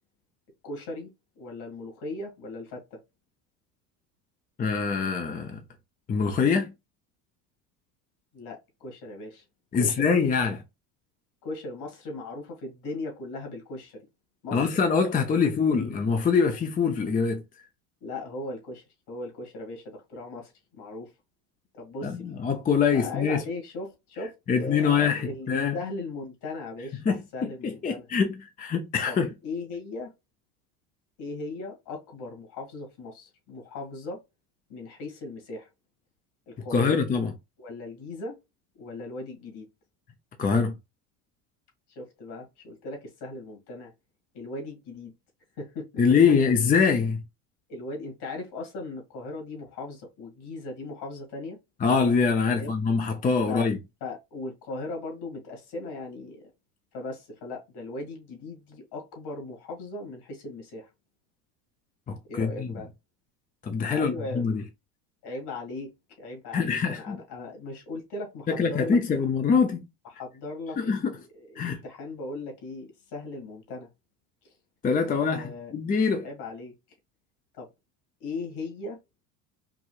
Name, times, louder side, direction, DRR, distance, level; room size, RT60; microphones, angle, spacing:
voice 1, 0.6-1.1 1.4-3.0 8.3-9.4 9.8-10.1 11.4-14.1 14.4-14.7 15.3-15.9 18.0-21.1 21.7-22.4 22.9-27.0 27.3-28.1 29.1-30.1 31.2-34.2 34.7-35.7 36.5-37.0 37.6-38.4 38.8-39.7 41.9-43.9 44.3-45.1 45.6-46.0 46.3-46.4 47.7-51.6 52.5-52.7 53.5-53.7 54.0-56.5 56.9-60.9 62.3-62.9 63.9-64.5 65.2-65.9 66.2-69.0 70.1-70.9 71.3-73.9 75.1-75.7 76.2-76.8 77.5-77.7 78.2-79.0, left 2 dB, 60° left, 2.4 m, -38 dB
voice 2, 4.6-5.6 6.1-6.7 9.7-10.6 14.5-17.4 22.0-23.4 24.5-25.8 27.1-27.2 27.4-29.3 36.7-37.3 40.4-40.7 46.0-47.2 51.8-53.8 62.1-62.7 63.6-64.6 66.5-67.2 68.6-69.9 70.8-71.2 71.6-71.8 74.8-76.2, left 5 dB, 20° left, 0.5 m, -24 dB
4.8 x 2.6 x 2.3 m
supercardioid pair, 90°, 46 cm